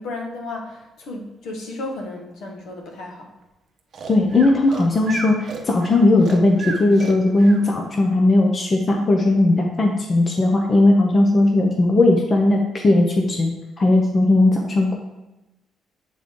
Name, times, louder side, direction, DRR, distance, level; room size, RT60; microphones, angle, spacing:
voice 1, 0.0-3.3, left 2 dB, 65° left, 1 dB, 1.3 m, -33 dB
Breathing, 3.9-7.6, right 5 dB, 45° right, 0.7 m, -34 dB
voice 2, 4.1-13.5 13.8-14.9, left 2 dB, 25° left, 1 dB, 0.6 m, -17 dB
8.3 x 3.8 x 3.6 m, 1.0 s
cardioid pair, 170°, 0 cm